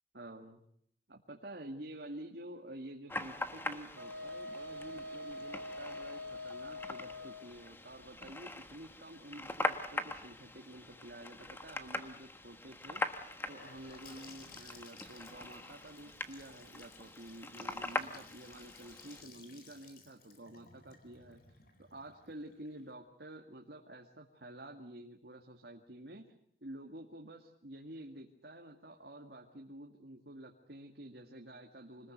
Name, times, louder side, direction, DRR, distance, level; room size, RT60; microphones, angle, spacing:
voice 1, 0.1-0.6 1.1-13.0 13.5-21.4 21.8-32.1, right 1 dB, 65° right, 1 dB, 2.1 m, -50 dB
sound 1, 3.1-19.2, left 2 dB, 10° left, 1.3 m, -42 dB
Wind instrument woodwind instrument, 4.0-7.5, left 2 dB, 80° right, 3.0 m, -44 dB
Gurgling / Sink (filling or washing) / Bathtub (filling or washing), 13.1-22.9, left 4 dB, 55° left, 4.4 m, -58 dB
26.0 x 20.5 x 8.0 m, 0.69 s
head